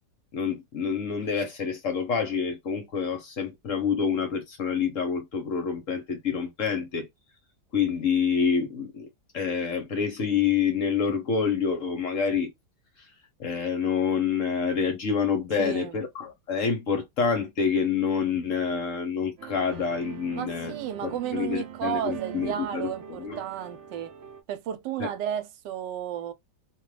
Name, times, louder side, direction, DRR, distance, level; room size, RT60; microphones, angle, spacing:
voice 1, 0.3-7.1 7.7-9.1 9.3-12.5 13.4-20.7 21.0-23.4 25.0-25.1, left 6 dB, 60° left, 0.9 m, -27 dB
voice 2, 15.6-16.0 20.3-24.1 24.5-26.3, right 10 dB, 90° right, 1.2 m, -33 dB
sound 1, 19.4-24.4, right 8 dB, 65° right, 0.7 m, -42 dB
2.7 x 2.3 x 3.1 m
omnidirectional pair, 1.9 m